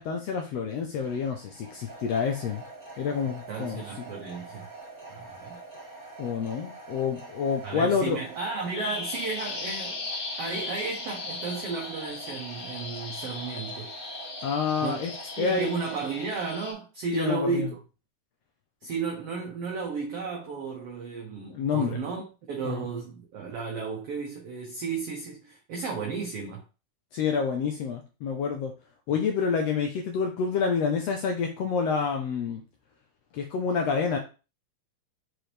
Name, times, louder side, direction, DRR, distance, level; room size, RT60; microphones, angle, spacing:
voice 1, 0.0-2.6 3.0-4.1 6.2-8.2 14.4-15.1 15.4-15.7 17.1-17.7 21.5-22.0 22.6-22.9 27.1-28.7 29.1-32.6 33.3-34.2, left 6 dB, 85° left, 1.4 m, -28 dB
sound 1, 1.0-16.3, right 3 dB, 10° right, 2.3 m, -45 dB
voice 2, 3.5-4.7 5.1-5.6 7.6-10.1 10.4-13.9 14.8-15.1 15.4-17.8 18.8-26.6, right 4 dB, 65° right, 1.6 m, -33 dB
Bird vocalization bird call bird song, 8.7-16.7, left 3 dB, 55° left, 2.6 m, -38 dB
6.0 x 4.8 x 3.3 m
omnidirectional pair, 3.9 m